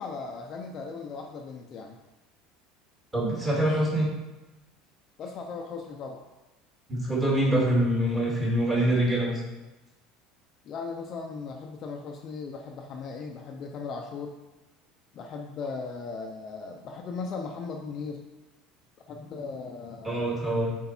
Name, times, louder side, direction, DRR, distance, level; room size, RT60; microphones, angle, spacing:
voice 1, 0.0-2.0 3.7-3.8 5.2-6.2 10.6-14.4 15.1-18.2 19.1-20.4, left 4 dB, 35° left, 2 dB, 0.6 m, -37 dB
voice 2, 3.1-4.1 6.9-9.4 20.0-20.8, right 1 dB, 15° right, -5 dB, 2.4 m, -25 dB
8.1 x 4.5 x 4.4 m, 1.1 s
cardioid pair, 160°, 0 cm